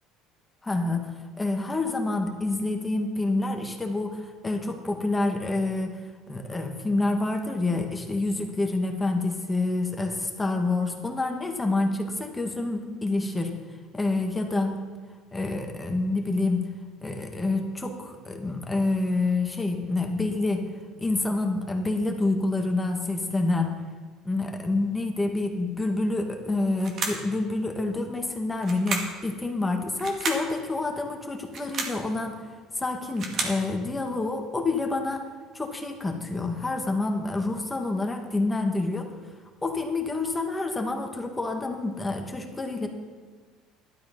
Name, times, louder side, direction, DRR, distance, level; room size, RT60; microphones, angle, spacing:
voice 1, 0.6-6.0 6.3-13.6 13.9-14.8 15.3-16.6 17.0-20.7 21.0-23.8 24.2-32.5 32.8-35.2 35.5-39.1 39.6-42.9, left 2 dB, 15° left, 3 dB, 1.9 m, -27 dB
sound 1, 26.8-27.3 28.6-29.2 30.0-30.5 31.4-32.0 32.9-33.6, right 3 dB, 50° right, 2.3 m, -31 dB
12.0 x 12.0 x 5.5 m, 1.5 s
supercardioid pair, 95°, 0 cm